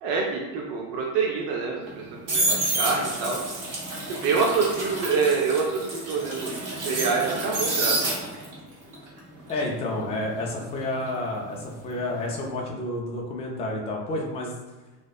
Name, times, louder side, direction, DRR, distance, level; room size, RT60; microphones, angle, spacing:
voice 1, 0.0-3.4 4.1-8.0, right 4 dB, 65° right, -1 dB, 0.6 m, -26 dB
sound 1, 1.8-8.6 8.9-11.8 12.1-12.4, right 2 dB, 45° right, 0.9 m, -29 dB
voice 2, 9.5-14.5, left 1 dB, 15° left, -1 dB, 0.3 m, -30 dB
2.6 x 2.0 x 2.3 m, 1.2 s
hypercardioid pair, 90°, 45 cm